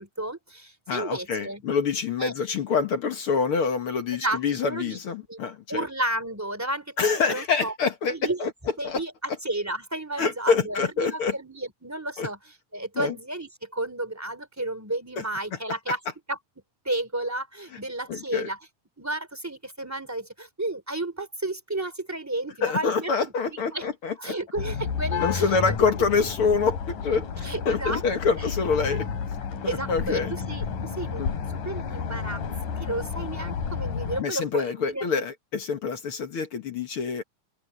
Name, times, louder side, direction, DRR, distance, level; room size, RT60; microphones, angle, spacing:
voice 1, 0.0-1.6 2.2-2.3 4.1-5.0 5.3-5.4 5.7-7.7 8.1-8.5 8.8-12.4 12.7-16.0 16.3-16.4 16.8-18.6 19.0-23.1 23.7-23.9 24.2-25.7 27.4-28.0 28.4-28.5 29.7-32.4 32.7-35.1, right 2 dB, 5° right, 2.8 m, -32 dB
voice 2, 0.9-5.8 7.0-8.5 8.8-9.0 10.2-11.3 12.2-12.3 13.0-13.2 15.2-15.3 18.1-18.5 22.6-24.4 25.2-29.1 29.6-30.3 31.2-31.4 34.2-37.2, left 5 dB, 50° left, 1.9 m, -26 dB
sound 1, 24.6-34.2, left 6 dB, 85° left, 4.8 m, -31 dB
open air
omnidirectional pair, 3.6 m